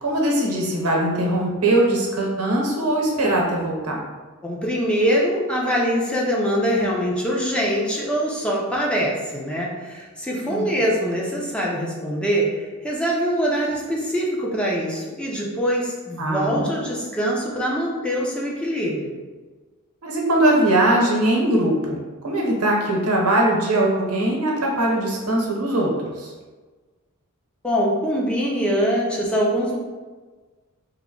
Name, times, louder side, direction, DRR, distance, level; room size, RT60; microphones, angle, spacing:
voice 1, 0.0-4.0 10.3-10.6 16.2-16.7 20.0-22.0 22.2-26.3, right 1 dB, 85° right, -2 dB, 0.9 m, -21 dB
voice 2, 4.4-19.1 27.6-29.8, equal, 5° left, -4 dB, 0.5 m, -23 dB
3.5 x 2.1 x 3.6 m, 1.3 s
head